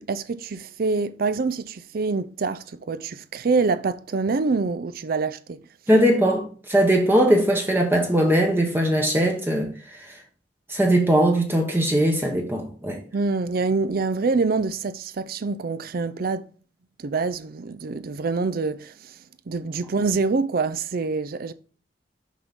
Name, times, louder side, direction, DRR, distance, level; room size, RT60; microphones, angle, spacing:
voice 1, 0.0-5.6 13.1-16.5 17.0-19.2 19.5-21.5, right 4 dB, 50° right, 0.4 m, -26 dB
voice 2, 5.9-9.7 10.0-10.2 10.7-13.0, right 1 dB, 10° right, 0.9 m, -20 dB
6.2 x 5.4 x 3.5 m
head